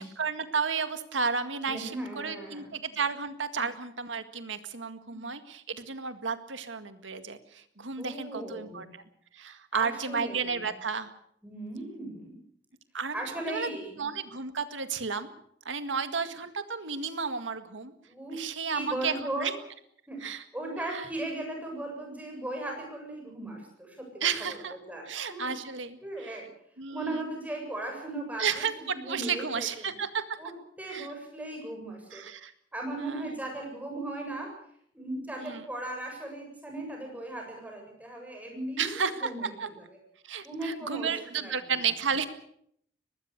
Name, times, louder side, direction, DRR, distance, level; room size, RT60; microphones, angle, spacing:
voice 1, 0.0-9.0 9.3-11.1 12.9-13.7 14.0-15.3 15.7-17.9 18.3-19.5 20.2-20.4 20.9-21.0 24.2-24.8 25.1-26.0 26.2-26.4 26.8-27.2 28.4-30.2 30.9-31.1 32.1-32.5 33.0-33.4 35.4-35.6 38.8-39.7 40.2-42.3, right 5 dB, 90° right, 9 dB, 1.9 m, -32 dB
voice 2, 1.7-2.8 5.1-5.2 8.0-8.8 9.7-10.7 11.4-12.4 13.1-14.0 18.1-18.4 18.7-19.6 20.1-20.2 20.5-25.0 25.3-25.6 26.0-26.5 26.9-29.9 30.4-32.2 32.7-34.5 34.9-39.8 40.4-41.7, right 1 dB, 10° right, 1 dB, 7.6 m, -37 dB
23.0 x 19.5 x 6.7 m, 0.68 s
head